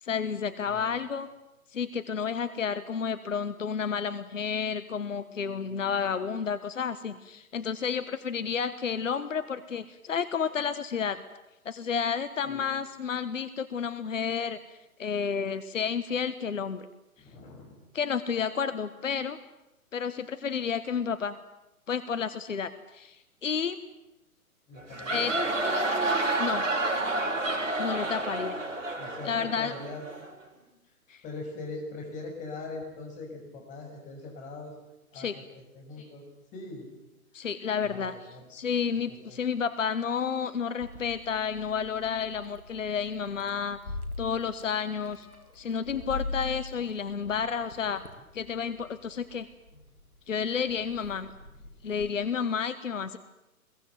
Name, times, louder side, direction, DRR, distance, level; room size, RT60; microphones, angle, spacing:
voice 1, 0.0-1.3 1.7-11.2 11.6-14.6 15.0-16.9 17.9-19.4 19.9-21.4 21.9-23.8 25.1-25.4 26.4-26.6 27.8-28.6 29.2-29.7 31.1-31.2 35.1-35.4 37.3-38.1 38.5-43.8 44.2-45.3 45.5-48.0 48.3-49.5 50.3-51.3 51.8-53.2, left 6 dB, 60° left, 12 dB, 1.4 m, -31 dB
voice 2, 17.2-17.7 24.7-25.3 29.0-30.0 31.2-34.7 35.1-36.2 36.5-36.9 37.4-37.5 37.8-38.4 39.1-39.4 51.6-51.7, left 3 dB, 15° left, 1 dB, 6.5 m, -41 dB
sound 1, 24.8-30.3, right 2 dB, 60° right, 5.9 m, -29 dB
Meow, 40.8-52.1, left 2 dB, 85° left, 3.8 m, -43 dB
23.5 x 22.5 x 9.4 m, 0.92 s
figure-of-eight pair, 130°, 43 cm